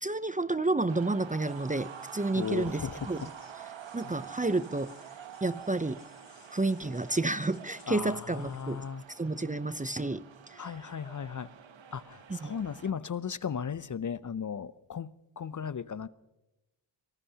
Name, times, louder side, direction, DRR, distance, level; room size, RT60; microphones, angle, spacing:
voice 1, 0.0-2.8 3.1-3.2 3.9-4.9 5.4-6.0 6.5-10.7 12.3-12.5, right 2 dB, 15° right, 0.6 m, -30 dB
sound 1, 0.9-12.9, right 8 dB, 65° right, 1.1 m, -48 dB
sound 2, 1.5-8.9, left 5 dB, 75° left, 5.2 m, -61 dB
voice 2, 2.3-3.3 4.0-4.1 7.9-9.0 10.6-11.5 11.9-16.1, left 7 dB, 40° left, 0.6 m, -36 dB
24.0 x 19.0 x 2.9 m
cardioid pair, 45°, 48 cm